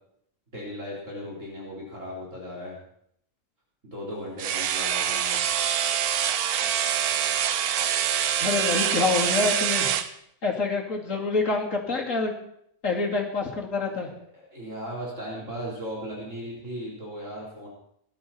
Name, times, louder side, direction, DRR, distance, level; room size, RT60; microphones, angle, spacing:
voice 1, 0.5-2.8 3.8-5.4 13.8-17.7, equal, 55° right, -4 dB, 4.4 m, -37 dB
sound 1, 4.4-10.1, right 9 dB, 85° right, 1.3 m, -25 dB
voice 2, 8.4-9.9 10.4-12.3 12.8-14.1, left 3 dB, 60° left, 0 dB, 2.9 m, -26 dB
19.5 x 12.0 x 4.3 m, 0.70 s
omnidirectional pair, 1.6 m